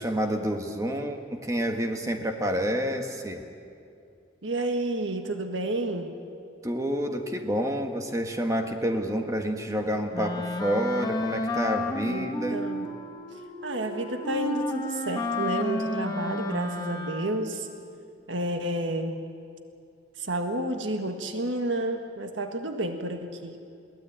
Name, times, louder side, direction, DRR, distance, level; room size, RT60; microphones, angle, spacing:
voice 1, 0.0-3.4 6.6-12.6, equal, 15° right, 4 dB, 1.5 m, -28 dB
voice 2, 4.4-6.1 12.1-12.9 13.6-17.7 18.3-19.2 20.2-23.6, right 1 dB, 85° right, 5 dB, 1.6 m, -30 dB
Wind instrument woodwind instrument, 10.1-17.6, left 2 dB, 20° left, 1.3 m, -32 dB
22.0 x 17.0 x 8.9 m, 2.5 s
head